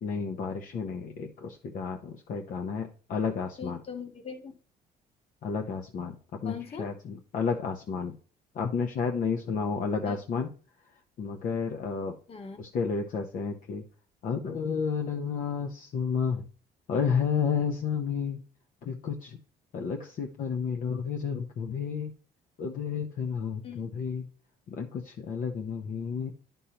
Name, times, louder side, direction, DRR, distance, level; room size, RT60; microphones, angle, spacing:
voice 1, 0.0-3.8 5.4-6.2 6.4-8.2 8.5-10.5 11.2-12.2 12.6-13.8 14.2-16.4 16.9-18.4 18.8-19.4 19.7-22.1 22.6-24.3 24.7-26.3, left 6 dB, 55° left, 3 dB, 0.8 m, -31 dB
voice 2, 3.6-4.5 6.4-6.9 10.0-10.2 12.3-12.6 23.6-23.9, left 6 dB, 35° left, 5 dB, 1.3 m, -40 dB
10.0 x 5.4 x 2.9 m, 0.38 s
cardioid pair, 110°, 17 cm